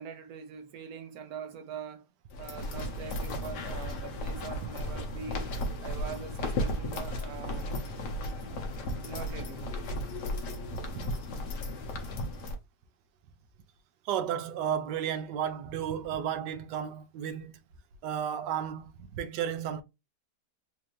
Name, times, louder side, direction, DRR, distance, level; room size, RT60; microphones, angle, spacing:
voice 1, 0.0-2.1 2.4-5.5 5.8-7.7 8.4-8.6 9.0-9.7, right 7 dB, 70° right, 1.0 m, -43 dB
sound 1, 2.3-12.6, left 1 dB, 85° left, 1.6 m, -35 dB
voice 2, 14.0-17.5 18.0-19.8, right 9 dB, 90° right, 1.3 m, -33 dB
4.4 x 2.6 x 3.0 m
omnidirectional pair, 1.8 m